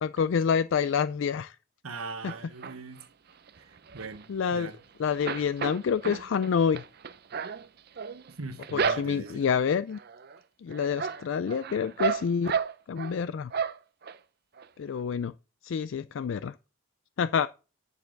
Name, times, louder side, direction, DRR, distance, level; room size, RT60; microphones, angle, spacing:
voice 1, 0.0-1.6 2.2-2.3 4.3-4.7 5.0-6.8 8.7-10.0 10.6-12.5 12.9-13.5 14.8-15.3 15.6-16.5 17.2-17.5, left 6 dB, 60° left, 0.3 m, -27 dB
voice 2, 1.8-3.1 3.6-4.8 8.3-9.5, right 3 dB, 85° right, 1.2 m, -41 dB
sound 1, 2.3-3.0 3.5-4.8 5.1-9.5 9.9-10.4 10.7-13.2 13.5-14.2 14.6-14.7 14.9-15.0, right 6 dB, 50° right, 0.5 m, -33 dB
9.6 x 6.9 x 3.9 m
head